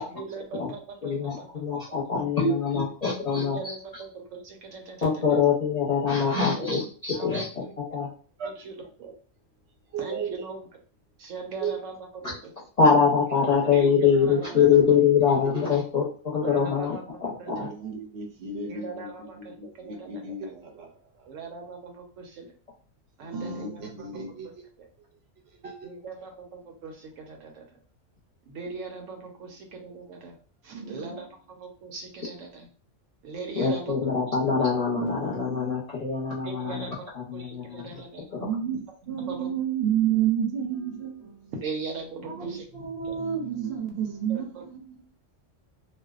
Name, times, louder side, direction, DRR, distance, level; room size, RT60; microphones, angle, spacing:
voice 1, 0.1-1.5 3.3-5.1 7.1-7.7 8.4-9.1 10.0-10.7 11.2-12.5 13.6-14.7 16.3-17.6 18.6-20.5 21.3-22.5 23.2-24.2 25.8-27.6 28.5-30.4 30.6-32.7 33.2-34.1 36.4-36.9 37.3-38.2 39.2-39.5 41.6-42.6 43.1-43.2 44.3-44.6, right 4 dB, 90° right, 3 dB, 1.0 m, -40 dB
voice 2, 1.0-4.0 5.0-8.1 12.2-12.3 12.8-17.7 33.6-38.0, left 6 dB, 40° left, -6 dB, 0.7 m, -24 dB
voice 3, 9.9-10.3 11.6-11.7 15.5-15.7 17.5-20.9 23.2-24.5 25.6-25.9 26.2-26.3 30.7-31.2 34.5-34.6 35.0-35.6 37.9-38.0 38.4-41.4 42.2-45.0, right 7 dB, 65° right, 2 dB, 0.8 m, -31 dB
2.5 x 2.1 x 2.3 m, 0.40 s
omnidirectional pair, 1.3 m